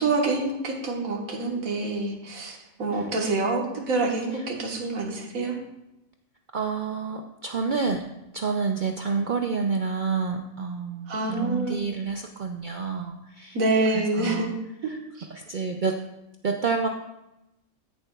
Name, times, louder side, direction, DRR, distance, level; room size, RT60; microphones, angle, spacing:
voice 1, 0.0-5.5 11.1-11.8 13.5-14.5 14.8-14.9 15.2-15.3, right 3 dB, 90° right, 0 dB, 1.7 m, -26 dB
voice 2, 6.5-8.0 8.3-13.6 13.9-14.5 14.8-15.0 15.3-16.0 16.4-16.9, right 5 dB, 60° right, 4 dB, 0.5 m, -29 dB
14.0 x 6.8 x 2.3 m, 0.90 s
omnidirectional pair, 1.4 m